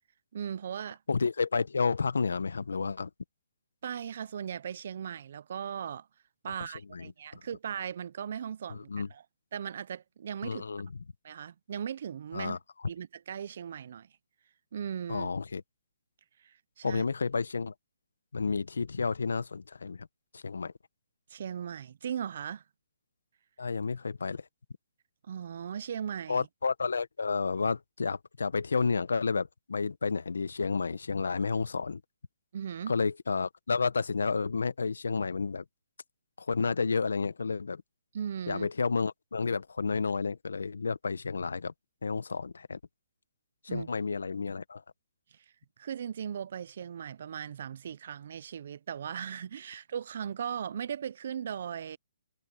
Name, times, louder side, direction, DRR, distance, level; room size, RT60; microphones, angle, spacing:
voice 1, 0.3-1.0 3.8-6.1 6.4-9.2 9.5-10.6 11.2-12.6 12.9-14.1 14.7-15.3 16.4-17.0 21.3-22.6 25.3-26.5 32.5-33.0 38.1-38.7 43.7-43.9 45.3-45.4 45.8-52.0, right 8 dB, 55° right, 0.5 m, -38 dB
voice 2, 1.1-3.1 6.9-7.1 8.7-9.1 10.4-10.9 12.3-12.6 15.1-15.6 16.8-17.7 18.3-20.1 20.3-20.7 23.6-24.4 26.3-32.0 32.9-35.6 36.4-37.8 38.5-41.7 42.0-42.8 43.6-44.8, left 4 dB, 85° left, 1.2 m, -31 dB
hypercardioid pair, 160°, 0 cm